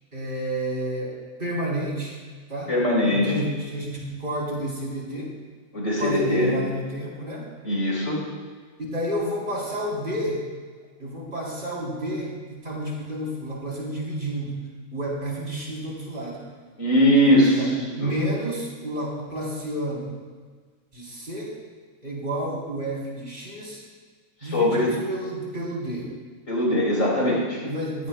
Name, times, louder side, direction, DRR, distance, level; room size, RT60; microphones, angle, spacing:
voice 1, 0.1-2.2 2.5-2.7 3.1-5.3 6.0-7.5 8.9-10.4 11.0-14.6 14.9-16.5 17.3-20.1 20.9-21.6 22.0-23.8 24.4-26.1 27.6-28.1, right 1 dB, 35° right, -5 dB, 4.0 m, -30 dB
voice 2, 2.7-3.4 5.7-6.6 7.6-8.3 16.8-17.6 18.0-18.1 24.5-24.9 26.5-27.6, left 1 dB, 60° left, -3 dB, 4.5 m, -21 dB
19.5 x 16.5 x 2.3 m, 1.5 s
omnidirectional pair, 1.6 m